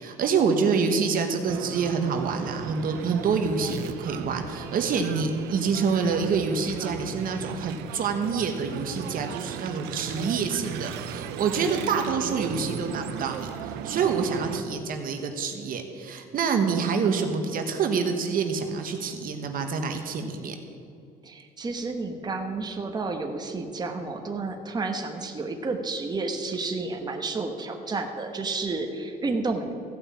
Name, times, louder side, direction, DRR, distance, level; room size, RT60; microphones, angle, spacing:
voice 1, 0.0-20.6, right 5 dB, 55° right, 5 dB, 1.3 m, -27 dB
sound 1, 1.5-14.6, right 9 dB, 90° right, 0.6 m, -37 dB
voice 2, 21.2-29.7, right 3 dB, 25° right, 3 dB, 1.2 m, -31 dB
14.5 x 5.7 x 8.5 m, 2.4 s
cardioid pair, 110°, 17 cm